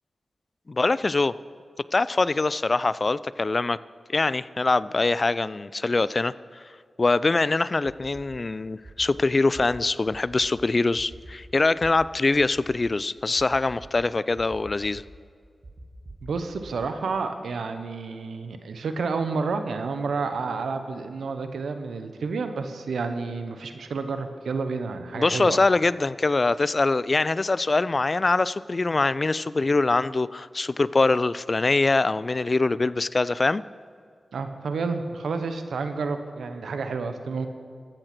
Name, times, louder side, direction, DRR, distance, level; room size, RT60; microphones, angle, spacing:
voice 1, 0.7-1.3 1.9-3.8 4.1-6.3 7.0-15.0 25.1-33.6, left 3 dB, 50° left, 18 dB, 0.3 m, -23 dB
sound 1, 7.8-8.2 8.8-9.1 9.5-9.6 10.1-10.5 11.0-11.3 11.8-11.9 12.4-12.8 13.4-13.9 14.4-15.0 15.6-16.7, right 2 dB, 55° right, 1.7 m, -44 dB
voice 2, 16.2-25.6 34.3-37.5, right 4 dB, 90° right, 8 dB, 0.9 m, -30 dB
14.0 x 8.9 x 6.0 m, 2.1 s
cardioid pair, 40°, 0 cm